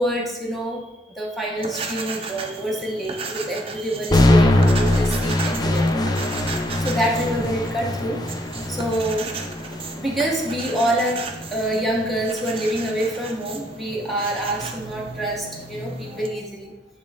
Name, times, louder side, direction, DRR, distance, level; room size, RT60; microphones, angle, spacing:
voice 1, 0.0-5.9 6.8-9.4 9.9-16.7, right 1 dB, ahead, -3 dB, 0.9 m, -26 dB
sound 1, 1.6-16.3, right 4 dB, 30° right, 0.6 m, -35 dB
sound 2, 4.1-12.1, left 1 dB, 20° left, 0.5 m, -22 dB
8.8 x 3.4 x 3.5 m, 0.99 s
head